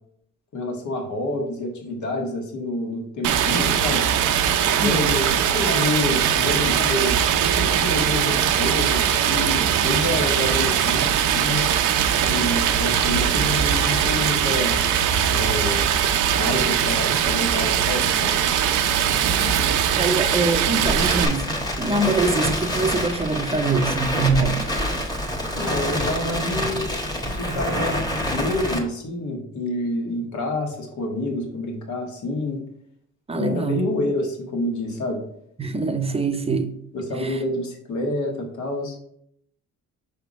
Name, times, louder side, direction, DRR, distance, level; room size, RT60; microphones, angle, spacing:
voice 1, 0.5-4.0 4.6-7.2 7.6-11.7 12.2-14.8 15.3-15.8 16.4-18.3 25.5-26.9 27.3-32.6 33.3-35.2 36.3-36.4 36.9-39.0, left 1 dB, 70° left, 1 dB, 1.5 m, -28 dB
Stream, 3.2-21.3, right 9 dB, 85° right, 0.6 m, -21 dB
voice 2, 4.8-5.1 19.4-19.5 20.0-21.5 21.8-24.6 27.5-27.6 33.3-33.8 35.6-36.7 37.2-37.4, right 3 dB, 20° right, 7 dB, 0.6 m, -24 dB
Crackle, 19.6-28.8, equal, 15° left, 1.2 m, -27 dB
5.6 x 3.4 x 5.1 m, 0.70 s
cardioid pair, 90°, 30 cm